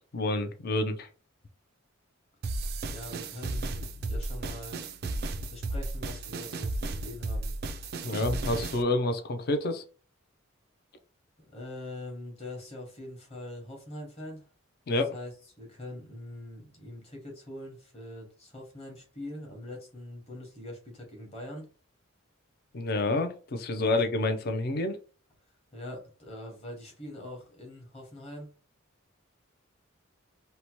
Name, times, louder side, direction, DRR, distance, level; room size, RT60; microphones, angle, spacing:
voice 1, 0.1-1.1 8.0-9.8 14.9-15.1 22.7-25.0, left 2 dB, 45° left, 0.4 m, -28 dB
sound 1, 2.4-8.8, right 2 dB, 50° right, 0.3 m, -34 dB
voice 2, 2.9-4.8 5.5-7.5 11.5-14.5 15.1-15.3 15.6-21.7 23.9-24.0 25.7-28.5, left 1 dB, 30° left, 1.0 m, -43 dB
2.8 x 2.1 x 2.9 m
head